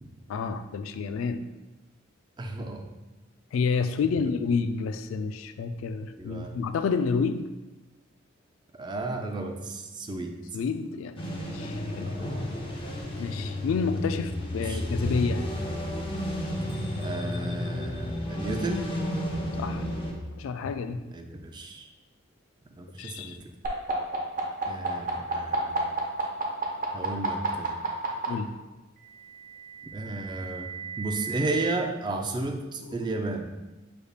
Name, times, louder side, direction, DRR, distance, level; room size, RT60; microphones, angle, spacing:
voice 1, 0.3-1.4 3.5-7.5 10.5-12.1 13.2-15.4 19.6-19.8 20.3-21.0 23.0-23.4 28.3-28.5 32.9-33.0, left 5 dB, 90° left, 11 dB, 0.3 m, -29 dB
voice 2, 2.4-2.9 6.2-6.6 8.7-10.4 12.0-12.4 14.6-14.8 17.0-18.8 21.1-21.9 22.8-23.4 24.7-25.8 26.9-27.7 29.9-30.7 31.0-33.5, right 2 dB, 20° right, 4 dB, 0.4 m, -33 dB
sound 1, 11.2-20.1, left 1 dB, 25° left, 0.7 m, -32 dB
sound 2, 23.6-28.3 29.4-31.7, right 5 dB, 40° right, 0.8 m, -31 dB
6.5 x 3.4 x 2.3 m, 1.1 s
head